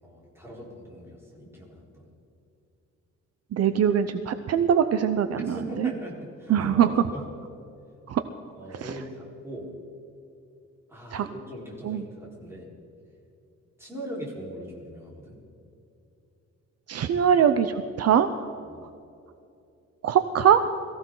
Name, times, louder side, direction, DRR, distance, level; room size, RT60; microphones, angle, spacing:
voice 1, 0.0-2.1 5.4-7.2 8.6-9.7 10.9-12.7 13.8-15.4 18.6-18.8, equal, 10° right, -4 dB, 4.3 m, -40 dB
voice 2, 3.5-5.9 6.5-7.1 8.1-8.2 8.7-8.9 11.1-11.3 11.8-12.0 16.9-18.5 20.0-20.7, right 8 dB, 55° right, 10 dB, 0.6 m, -22 dB
22.0 x 15.5 x 3.9 m, 2.6 s
wide cardioid pair, 160°, 29 cm